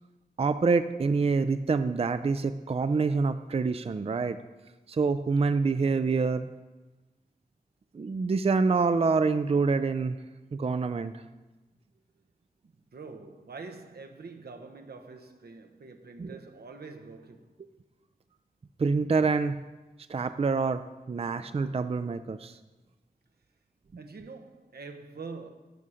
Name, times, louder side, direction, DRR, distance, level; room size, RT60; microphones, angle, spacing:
voice 1, 0.4-4.4 4.9-6.5 7.9-10.2 10.5-11.1 16.2-16.4 18.8-19.6 20.1-22.6, right 4 dB, 40° right, 0.4 m, -26 dB
voice 2, 12.9-17.5 24.0-25.5, right 4 dB, 80° right, 0.9 m, -45 dB
12.5 x 4.9 x 5.6 m
wide cardioid pair, 55°, 16 cm